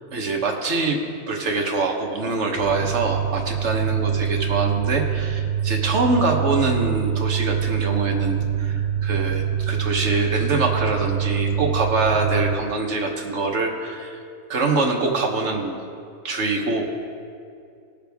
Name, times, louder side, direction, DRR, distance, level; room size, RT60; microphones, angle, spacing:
voice 1, 0.1-1.0 1.3-14.2 14.5-15.8 16.2-16.8, right 3 dB, 45° right, 1 dB, 1.2 m, -24 dB
sound 1, 2.6-12.5, right 9 dB, 85° right, 1.4 m, -25 dB
19.0 x 6.6 x 3.5 m, 2.4 s
omnidirectional pair, 2.0 m